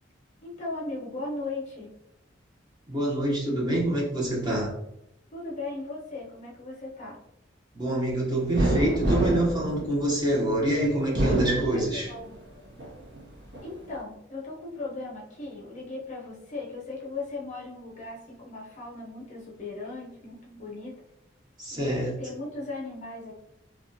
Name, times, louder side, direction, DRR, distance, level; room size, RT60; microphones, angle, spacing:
voice 1, 0.4-1.9 5.3-7.2 11.7-12.4 13.6-21.0 21.7-23.4, left 3 dB, 40° left, -4 dB, 0.7 m, -37 dB
voice 2, 2.9-4.7 7.7-12.1 21.6-22.1, right 1 dB, 20° right, -4 dB, 0.6 m, -26 dB
sound 1, 8.5-10.5 11.0-12.3 12.8-13.7, right 1 dB, 60° right, 0.6 m, -27 dB
2.7 x 2.3 x 2.6 m, 0.83 s
head